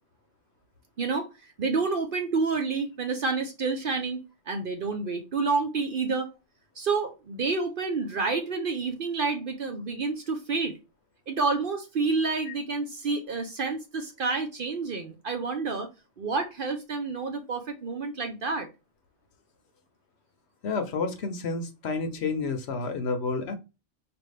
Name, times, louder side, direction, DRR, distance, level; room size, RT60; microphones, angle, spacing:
voice 1, 1.0-4.2 4.5-6.3 6.8-10.7 11.3-15.9 16.2-18.7, right 4 dB, 55° right, 0.7 m, -29 dB
voice 2, 20.6-23.6, left 4 dB, 65° left, 0.9 m, -30 dB
4.5 x 2.5 x 3.2 m
omnidirectional pair, 1.2 m